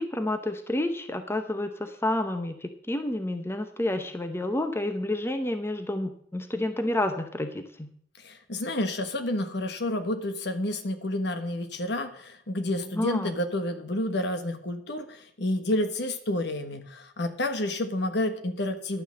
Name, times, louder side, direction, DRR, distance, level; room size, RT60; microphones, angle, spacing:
voice 1, 0.0-7.9 12.7-13.3, left 1 dB, 15° left, 7 dB, 0.8 m, -30 dB
voice 2, 8.2-19.0, left 1 dB, 65° left, 8 dB, 1.3 m, -30 dB
11.0 x 6.0 x 7.5 m, 0.63 s
head